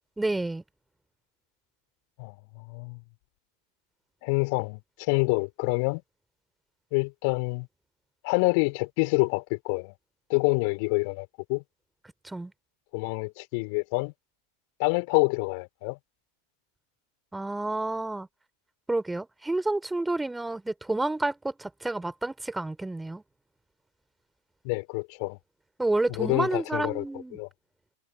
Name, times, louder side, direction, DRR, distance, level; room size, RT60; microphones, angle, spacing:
voice 1, 0.2-0.6 12.2-12.5 17.3-18.3 18.9-23.2 25.8-27.4, right 2 dB, 5° right, 4.1 m, -29 dB
voice 2, 2.2-3.0 4.2-6.0 6.9-7.7 8.2-9.9 10.3-11.6 12.9-14.1 14.8-16.0 24.6-25.4 26.1-27.0 27.3-27.5, left 33 dB, 45° left, 3.8 m, -27 dB
figure-of-eight pair, 90°, 0 cm